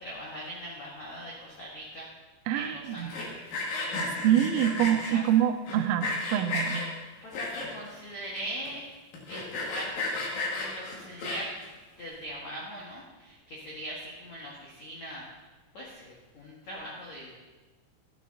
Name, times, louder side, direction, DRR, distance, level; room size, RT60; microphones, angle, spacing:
voice 1, 0.0-2.1 2.5-3.5 5.1-5.2 7.2-8.8 9.3-9.9 10.5-11.5 12.0-15.3 15.7-17.4, equal, 85° left, -4 dB, 1.6 m, -41 dB
voice 2, 2.5-3.1 4.2-6.8, right 10 dB, 85° right, 9 dB, 3.2 m, -25 dB
Sawing, 3.0-5.1 5.7-6.8 7.3-7.9 8.4-8.5 8.6-8.7 9.1-11.6, left 2 dB, 55° left, 2.8 m, -33 dB
14.0 x 9.3 x 3.9 m, 1.3 s
omnidirectional pair, 5.9 m